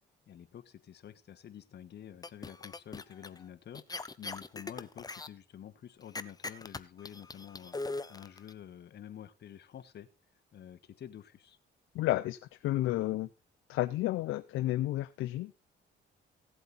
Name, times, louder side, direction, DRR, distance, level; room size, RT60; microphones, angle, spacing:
voice 1, 0.3-3.9 4.2-7.8 8.1-10.1 10.5-11.6, left 10 dB, 60° left, 1.3 m, -49 dB
sound 1, 2.2-3.4 3.7-5.3 6.1-8.5, left 3 dB, 20° left, 0.8 m, -40 dB
voice 2, 11.9-13.3 13.7-15.5, left 16 dB, 85° left, 0.6 m, -31 dB
16.5 x 7.9 x 4.1 m
cardioid pair, 90°, 20 cm